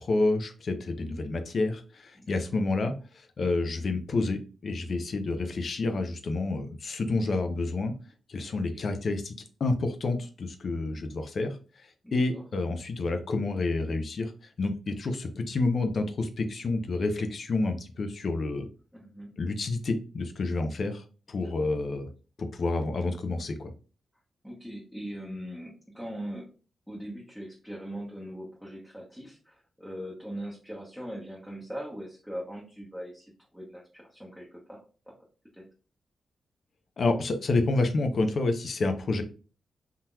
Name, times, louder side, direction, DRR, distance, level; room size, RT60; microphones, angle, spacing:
voice 1, 0.0-7.9 8.3-9.3 9.6-11.6 12.1-14.3 14.6-18.7 19.4-22.1 22.4-23.7 37.0-39.2, left 3 dB, 60° left, 7 dB, 0.6 m, -29 dB
voice 2, 2.2-2.6 8.5-8.9 12.0-12.4 18.9-19.3 21.4-21.7 24.4-26.5 26.9-35.1 35.5-35.6, equal, ahead, -4 dB, 0.9 m, -41 dB
3.7 x 2.8 x 2.3 m, 0.36 s
cardioid pair, 70°, 0 cm